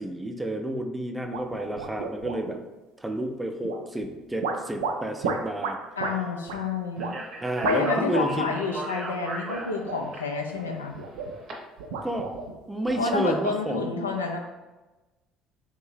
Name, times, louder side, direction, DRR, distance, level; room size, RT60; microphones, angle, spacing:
voice 1, 0.0-2.6 3.0-5.8 7.4-8.5 12.0-12.3 12.7-13.9, right 1 dB, 10° right, 4 dB, 0.4 m, -30 dB
sound 1, 1.3-2.6 3.6-4.1 4.4-6.2 6.5-6.6 7.0-7.2 7.6-8.0 8.3-8.7 9.6-10.1 10.5-11.4 11.8-13.3, right 5 dB, 70° right, 0.3 m, -33 dB
voice 2, 6.0-7.2 7.6-11.0 13.0-14.4, left 4 dB, 85° left, 3 dB, 0.3 m, -29 dB
Speech, 7.0-11.5, right 2 dB, 45° right, 0.7 m, -37 dB
3.5 x 2.7 x 3.3 m, 1.1 s
figure-of-eight pair, 55°, 0 cm